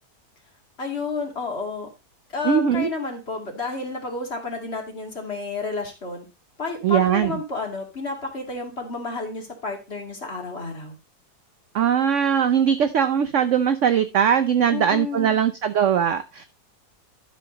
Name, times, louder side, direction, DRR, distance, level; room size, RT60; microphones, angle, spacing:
voice 1, 0.8-1.9 2.3-6.3 6.6-11.0 14.7-15.4, left 4 dB, 35° left, 2 dB, 2.5 m, -31 dB
voice 2, 2.4-2.9 6.8-7.4 11.7-16.4, right 8 dB, 65° right, 9 dB, 0.7 m, -20 dB
12.0 x 5.8 x 3.9 m, 0.28 s
omnidirectional pair, 1.9 m